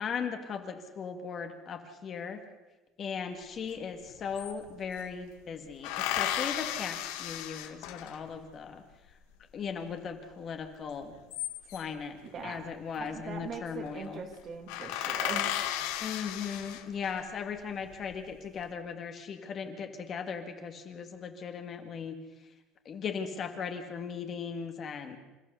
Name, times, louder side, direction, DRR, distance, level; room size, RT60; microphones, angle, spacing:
voice 1, 0.0-2.4 3.0-9.2 9.5-11.1 11.7-14.2 16.0-22.2 22.9-25.2, left 6 dB, 30° left, 6 dB, 1.8 m, -38 dB
sound 1, 3.7-3.8 4.0-5.1 5.8-8.4 11.0-12.0 13.2-13.5 13.9-14.0 14.3-14.4 14.7-17.2 17.8-18.5, left 12 dB, 85° left, 1.8 m, -34 dB
voice 2, 12.3-12.7 13.0-15.5, right 5 dB, 30° right, 5 dB, 2.2 m, -41 dB
27.5 x 14.5 x 6.8 m, 1.1 s
cardioid pair, 165°, 0 cm